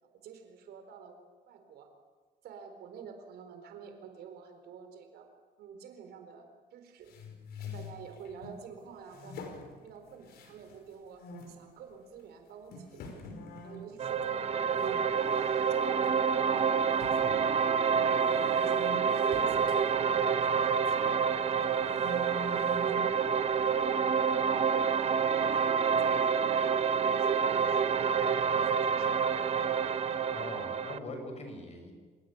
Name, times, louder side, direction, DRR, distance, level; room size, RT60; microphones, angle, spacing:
voice 1, 0.0-1.2 1.5-1.9 2.4-5.3 5.6-7.1 7.6-9.6 9.8-13.3 13.6-15.3 15.5-16.7 17.1-17.6 18.0-19.8 20.0-22.6 22.9-23.4 23.7-26.6 27.0-28.1 28.5-29.6, right 6 dB, 70° right, 6 dB, 4.4 m, -49 dB
sound 1, 7.1-8.6 9.1-10.9 11.2-11.6 12.2-12.3 12.7-15.0 15.3-15.7 16.0-16.1 17.0-21.0 21.5-23.2, left 1 dB, 70° left, 5.3 m, -45 dB
sound 2, 14.0-31.0, right 6 dB, 35° right, 1.1 m, -28 dB
voice 2, 30.3-31.9, left 2 dB, 40° left, 4 dB, 6.9 m, -42 dB
27.5 x 17.0 x 8.9 m, 1.5 s
cardioid pair, 110°, 17 cm